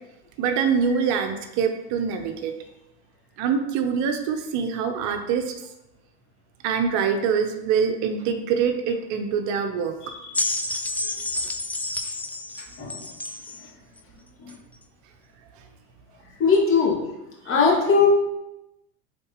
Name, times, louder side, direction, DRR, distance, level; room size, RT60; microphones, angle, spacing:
voice 1, 0.4-2.5 3.4-5.5 6.6-9.9 12.6-12.7, right 6 dB, 60° right, 6 dB, 0.9 m, -24 dB
sound 1, 10.3-13.6 14.5-14.6, left 2 dB, 5° left, 0.3 m, -29 dB
voice 2, 16.4-17.0 17.5-18.2, left 4 dB, 40° left, -3 dB, 2.0 m, -20 dB
7.8 x 4.0 x 3.0 m, 0.93 s
supercardioid pair, 110°, 34 cm